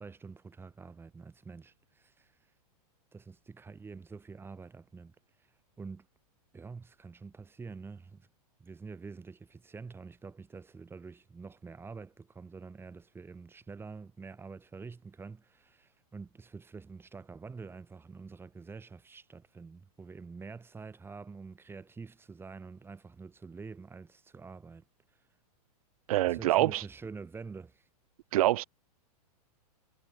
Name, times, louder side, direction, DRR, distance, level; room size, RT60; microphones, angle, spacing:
voice 1, 0.0-2.3 3.1-5.2 5.8-6.1 6.5-8.3 8.6-24.8 26.3-27.9, right 4 dB, 10° right, 5.8 m, -47 dB
voice 2, 26.1-26.8 28.3-28.6, right 15 dB, 65° right, 1.1 m, -25 dB
hypercardioid pair, 135°, 20 cm